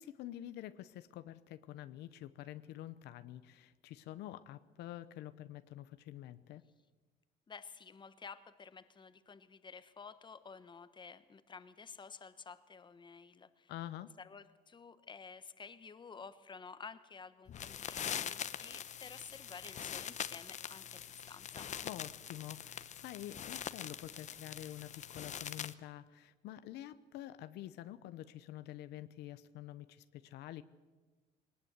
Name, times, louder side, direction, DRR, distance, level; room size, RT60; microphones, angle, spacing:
voice 1, 0.0-6.6 13.7-14.1 21.8-30.6, left 13 dB, 80° left, 13 dB, 0.9 m, -48 dB
voice 2, 7.5-13.7 14.2-21.7, left 5 dB, 25° left, 12 dB, 1.2 m, -52 dB
sound 1, 17.5-25.7, left 9 dB, 45° left, 0.9 m, -43 dB
21.0 x 19.5 x 8.1 m, 1.3 s
cardioid pair, 110°, 17 cm